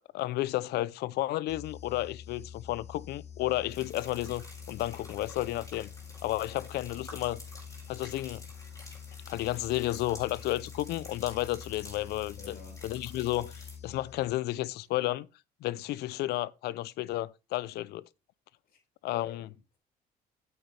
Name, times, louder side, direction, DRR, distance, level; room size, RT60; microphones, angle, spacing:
voice 1, 0.1-5.9 6.2-7.4 7.9-8.5 9.3-12.6 12.8-15.3 15.6-18.1 19.0-19.5, left 16 dB, 75° left, 0.5 m, -32 dB
sound 1, 1.5-14.6, left 8 dB, 40° left, 0.7 m, -47 dB
sound 2, 3.7-13.8, left 2 dB, 20° left, 5.0 m, -51 dB
voice 2, 12.4-12.8 18.7-18.8 19.1-19.8, left 6 dB, 60° left, 4.9 m, -49 dB
9.1 x 7.9 x 3.3 m
cardioid pair, 110°, 17 cm